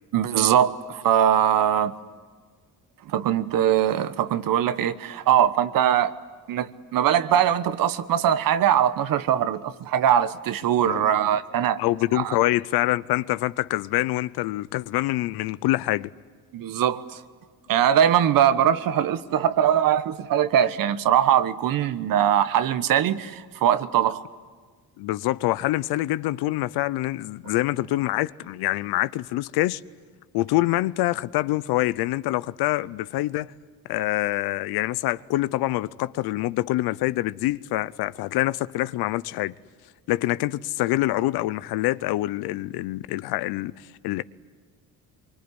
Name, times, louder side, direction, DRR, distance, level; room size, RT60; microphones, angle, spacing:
voice 1, 0.1-1.9 3.1-6.1 6.5-11.8 12.1-12.3 16.5-17.2 17.7-24.2, right 10 dB, 65° right, 1.3 m, -21 dB
voice 2, 11.8-16.1 25.0-29.8 30.3-33.5 33.9-39.5 40.1-44.2, left 17 dB, 85° left, 0.7 m, -25 dB
25.0 x 24.0 x 9.8 m
cardioid pair, 110°, 36 cm